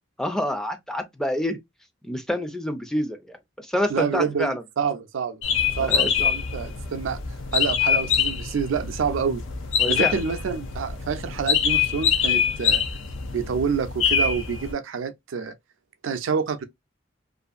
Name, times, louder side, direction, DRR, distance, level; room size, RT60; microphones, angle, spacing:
voice 1, 0.2-1.6 2.0-3.4 3.6-4.6 5.8-6.1 9.8-10.2, left 1 dB, 5° left, 0.4 m, -27 dB
voice 2, 3.9-5.4 5.8-7.2 7.5-9.4 9.9-12.8 13.3-15.5 16.0-16.6, right 6 dB, 85° right, 0.4 m, -27 dB
sound 1, 5.4-14.7, left 7 dB, 85° left, 0.5 m, -25 dB
2.5 x 2.4 x 2.4 m
head